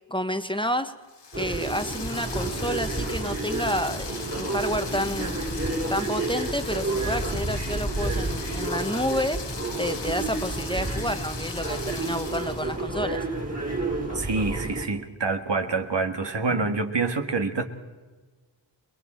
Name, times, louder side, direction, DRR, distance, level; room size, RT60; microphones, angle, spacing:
voice 1, 0.1-0.9 1.4-5.4 5.9-9.4 9.8-13.3 16.5-16.6, equal, 10° left, 9 dB, 1.1 m, -30 dB
sound 1, 1.1-12.8, left 5 dB, 65° left, 1.3 m, -39 dB
sound 2, 1.3-14.9, right 2 dB, 35° right, 3.7 m, -30 dB
voice 2, 14.1-17.6, right 3 dB, 65° right, 6 dB, 1.8 m, -26 dB
29.5 x 21.0 x 4.4 m, 1.3 s
wide cardioid pair, 50°, 45 cm